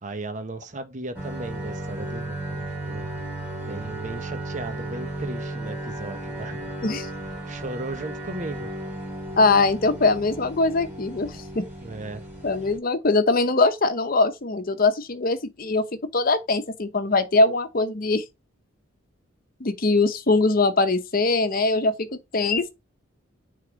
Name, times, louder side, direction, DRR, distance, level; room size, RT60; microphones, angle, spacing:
voice 1, 0.0-3.1 3.6-6.7 7.5-8.7 11.8-12.2, right 2 dB, 40° right, 1.0 m, -36 dB
sound 1, 1.1-12.8, right 1 dB, 10° right, 3.6 m, -35 dB
voice 2, 9.4-11.7 12.4-15.9 16.1-18.2 19.6-22.7, left 3 dB, 45° left, 0.9 m, -22 dB
6.6 x 3.8 x 5.1 m
head